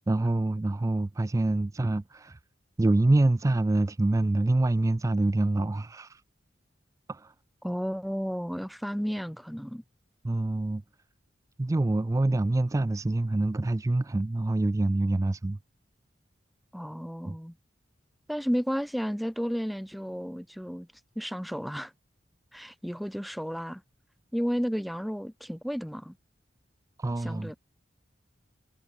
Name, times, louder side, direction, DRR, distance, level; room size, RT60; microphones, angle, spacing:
voice 1, 0.1-2.4 2.8-6.2 7.1-7.3 10.2-10.8 11.6-15.6 17.3-17.4 27.0-27.5, right 2 dB, 15° right, 0.3 m, -26 dB
voice 2, 7.6-9.8 16.7-17.5 18.3-20.9 21.2-21.9 22.5-23.8 24.3-26.1 27.2-27.6, equal, ahead, 1.1 m, -32 dB
head